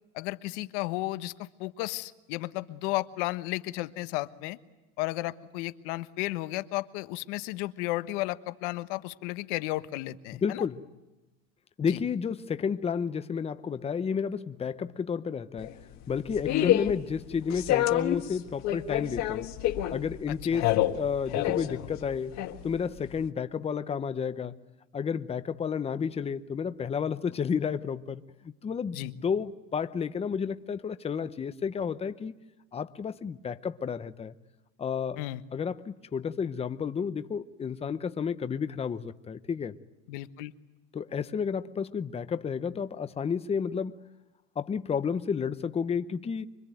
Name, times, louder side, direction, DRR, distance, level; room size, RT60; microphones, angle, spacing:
voice 1, 0.1-4.6 5.0-10.6 11.9-12.0 16.5-16.8 20.3-20.6 28.9-29.1 35.2-35.4 40.1-40.5, left 18 dB, 65° left, 1.3 m, -33 dB
voice 2, 10.3-10.8 11.8-15.8 16.1-19.5 19.9-22.3 22.6-24.6 24.9-32.3 32.7-34.3 34.8-35.2 35.5-39.8 40.9-44.0 44.6-46.5, left 6 dB, 15° left, 0.8 m, -31 dB
sound 1, 15.6-23.3, left 13 dB, 45° left, 1.7 m, -29 dB
25.5 x 23.0 x 9.2 m
supercardioid pair, 125°, 37 cm